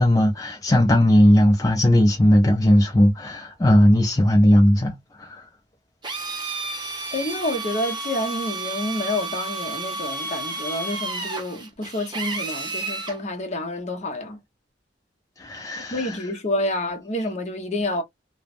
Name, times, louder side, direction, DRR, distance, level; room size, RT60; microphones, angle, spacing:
voice 1, 0.0-5.5 15.4-16.2, equal, 20° left, 0.4 m, -18 dB
Drill, 6.0-13.2, right 3 dB, 25° right, 0.8 m, -31 dB
voice 2, 7.1-14.4 15.9-18.0, left 1 dB, 40° left, 0.8 m, -28 dB
3.1 x 2.1 x 2.4 m
head